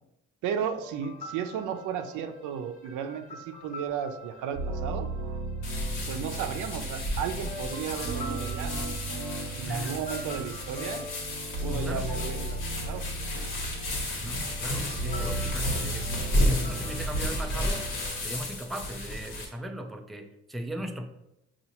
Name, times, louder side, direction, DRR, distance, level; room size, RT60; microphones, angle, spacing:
voice 1, 0.4-5.1 6.1-8.9 9.5-11.0 11.6-12.6 12.9-13.1, right 8 dB, 85° right, 8 dB, 0.5 m, -34 dB
sound 1, 0.7-6.7 7.3-19.6, left 2 dB, 25° left, 0.8 m, -46 dB
sound 2, 4.5-18.4, right 2 dB, 40° right, 0.7 m, -36 dB
sound 3, 5.6-19.5, left 1 dB, 85° left, 1.1 m, -33 dB
voice 2, 11.7-12.1 13.6-13.8 14.1-17.9 18.1-21.1, equal, ahead, 4 dB, 0.3 m, -37 dB
5.4 x 2.4 x 2.8 m, 0.87 s
cardioid pair, 90°, 30 cm